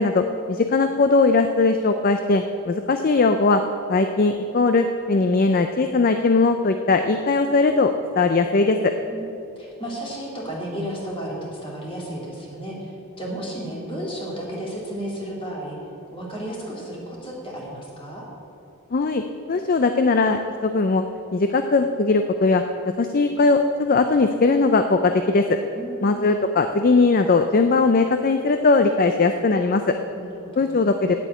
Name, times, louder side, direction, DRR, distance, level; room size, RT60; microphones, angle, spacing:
voice 1, 0.0-3.6 3.9-8.9 18.9-19.2 19.5-21.0 21.3-22.6 23.0-25.4 26.0-29.9 30.6-31.1, left 3 dB, 40° left, 7 dB, 0.4 m, -19 dB
voice 2, 9.6-15.8 16.1-18.2 25.7-26.3 30.1-30.8, right 1 dB, 25° left, -3 dB, 2.6 m, -33 dB
8.4 x 8.1 x 8.9 m, 2.8 s
head